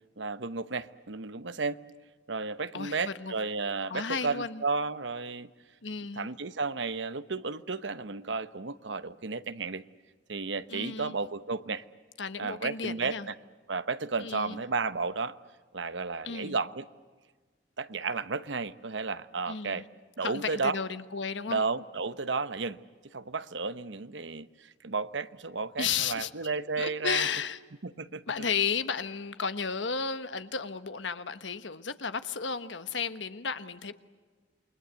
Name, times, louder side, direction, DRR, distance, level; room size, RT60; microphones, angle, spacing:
voice 1, 0.2-1.8 2.3-5.5 6.2-9.8 10.3-11.8 12.4-13.3 13.7-15.4 15.7-16.8 17.8-19.9 20.2-20.8 21.5-22.8 23.1-27.3 27.8-28.2, right 4 dB, 80° right, 0.9 m, -33 dB
voice 2, 2.7-3.3 3.9-4.6 5.8-6.3 10.7-11.2 12.2-13.3 14.2-14.6 16.2-16.6 19.5-19.8 20.2-21.6 25.8-26.3 26.8-27.6 28.3-33.9, left 6 dB, 85° left, 1.3 m, -33 dB
28.5 x 23.0 x 8.2 m
head